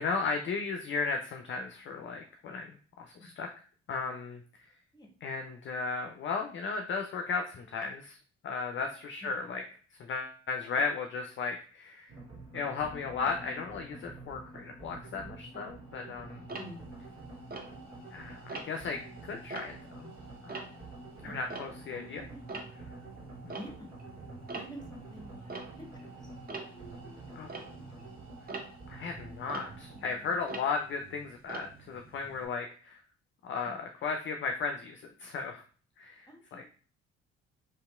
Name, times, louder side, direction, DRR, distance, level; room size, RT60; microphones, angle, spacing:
voice 1, 0.0-3.5 3.9-4.4 5.2-8.2 8.4-9.6 10.0-12.1 12.5-16.4 18.1-20.1 20.4-20.6 21.2-22.2 27.4-27.5 28.9-33.0 33.4-35.6 36.0-36.7, left 4 dB, 35° left, 4 dB, 0.4 m, -35 dB
sound 1, 12.1-30.0, right 2 dB, 45° right, 1.5 m, -48 dB
Tick-tock, 16.5-18.1 18.5-18.9 19.3-22.1 22.3-32.5, right 3 dB, 25° right, 0.6 m, -45 dB
voice 2, 16.6-16.9 21.1-21.4 21.9-22.6 23.4-23.9 24.5-28.0 36.3-36.7, equal, 10° left, 3 dB, 0.9 m, -49 dB
2.9 x 2.8 x 2.2 m, 0.41 s
hypercardioid pair, 50°, 33 cm